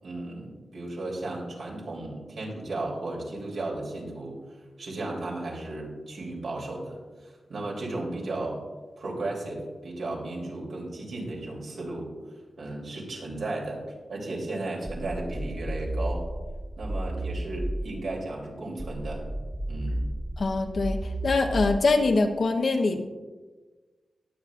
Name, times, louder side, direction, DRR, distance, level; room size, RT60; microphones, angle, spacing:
voice 1, 0.0-4.4 4.8-8.6 9.0-12.1 12.6-13.8 14.1-16.2 16.8-19.2 19.7-20.0, right 2 dB, 80° right, -3 dB, 3.0 m, -35 dB
sound 1, 14.9-18.1 18.8-22.1, right 1 dB, 25° right, 1.7 m, -33 dB
voice 2, 20.4-23.0, left 3 dB, 65° left, 4 dB, 0.9 m, -24 dB
19.0 x 7.5 x 2.5 m, 1.3 s
cardioid pair, 70°, 0 cm